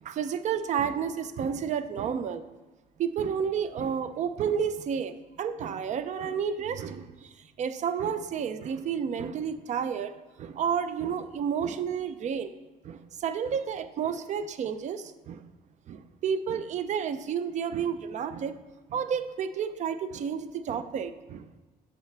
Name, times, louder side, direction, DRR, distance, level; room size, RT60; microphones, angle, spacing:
voice 1, 0.0-2.4 3.0-12.5 12.8-15.4 15.9-18.6 18.9-21.5, right 7 dB, 50° right, 11 dB, 0.5 m, -31 dB
8.1 x 7.3 x 3.3 m, 1.2 s
cardioid pair, 140°, 16 cm